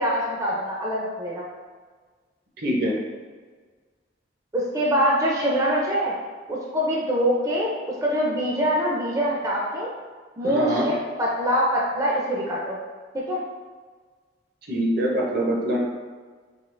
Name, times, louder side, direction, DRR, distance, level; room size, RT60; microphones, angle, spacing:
voice 1, 0.0-1.5 4.5-6.1 6.5-9.9 10.4-12.8 13.1-13.4, equal, 20° right, -4 dB, 0.5 m, -24 dB
voice 2, 2.6-2.9 10.4-10.9 14.7-15.8, equal, 60° right, -2 dB, 0.8 m, -24 dB
3.7 x 2.8 x 3.2 m, 1.5 s
head